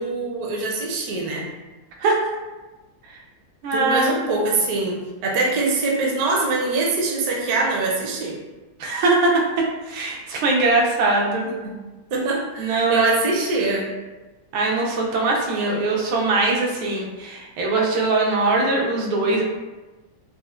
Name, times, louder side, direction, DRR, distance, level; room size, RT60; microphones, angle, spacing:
voice 1, 0.0-1.5 3.7-8.4 11.4-11.8 12.1-13.9, right 3 dB, 70° right, -2 dB, 0.9 m, -23 dB
voice 2, 3.6-4.2 8.8-11.5 12.6-13.0 14.5-19.4, right 3 dB, 85° right, -1 dB, 1.4 m, -21 dB
4.2 x 2.1 x 2.4 m, 1.2 s
omnidirectional pair, 2.2 m